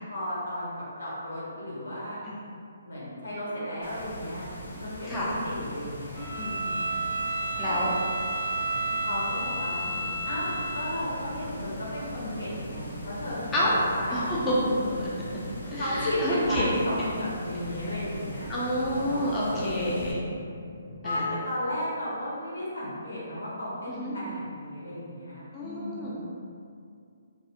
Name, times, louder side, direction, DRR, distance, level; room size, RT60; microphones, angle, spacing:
voice 1, 0.1-2.2 2.8-4.5 4.8-6.9 7.5-7.8 9.0-9.9 10.2-14.3 15.6-18.5 18.9-20.0 21.0-26.1, left 1 dB, 90° left, -7 dB, 1.0 m, -34 dB
sound 1, 3.8-20.1, equal, 60° left, 0.6 m, -41 dB
Bowed string instrument, 6.1-11.0, right 2 dB, 10° right, 0.7 m, -31 dB
voice 2, 7.6-7.9 13.5-13.7 14.1-14.5 14.8-15.1 15.7-16.8 18.5-20.2 21.0-21.2 24.0-24.2 25.5-26.1, left 1 dB, 15° left, -8 dB, 0.3 m, -29 dB
sound 2, 9.4-21.3, equal, 55° right, 0.4 m, -43 dB
2.6 x 2.0 x 2.4 m, 2.3 s
hypercardioid pair, 165°, 0 cm